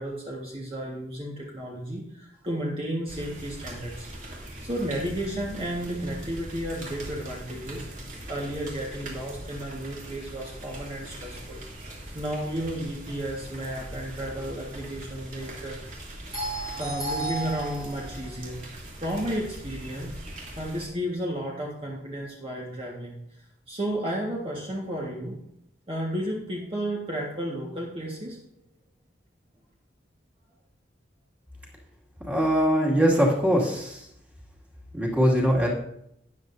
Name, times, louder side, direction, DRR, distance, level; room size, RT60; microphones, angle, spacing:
voice 1, 0.0-4.1 4.4-7.9 8.3-11.6 12.1-15.8 16.3-18.6 19.0-20.1 20.6-23.2 23.7-25.4 25.9-28.4, right 1 dB, 30° right, -4 dB, 1.6 m, -32 dB
sound 1, 3.1-20.8, right 1 dB, 45° right, 2.8 m, -41 dB
voice 2, 32.2-34.0 34.9-35.7, equal, 10° right, -3 dB, 2.2 m, -22 dB
12.5 x 9.7 x 2.7 m, 0.76 s
head